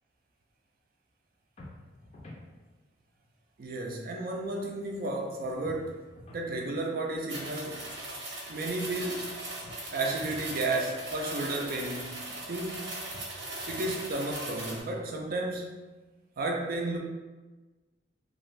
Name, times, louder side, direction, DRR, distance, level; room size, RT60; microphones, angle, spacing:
sound 1, 1.6-2.5 5.6-6.5 9.6-10.5 13.1-14.0, left 1 dB, 35° left, 0.4 m, -49 dB
voice 1, 3.6-6.0 6.3-7.9 8.5-9.3 9.9-12.8 13.7-15.7 16.4-17.0, right 2 dB, 55° right, 1 dB, 0.4 m, -33 dB
sound 2, 7.3-14.8, right 2 dB, 80° right, 0.9 m, -39 dB
2.5 x 2.5 x 3.1 m, 1.2 s
head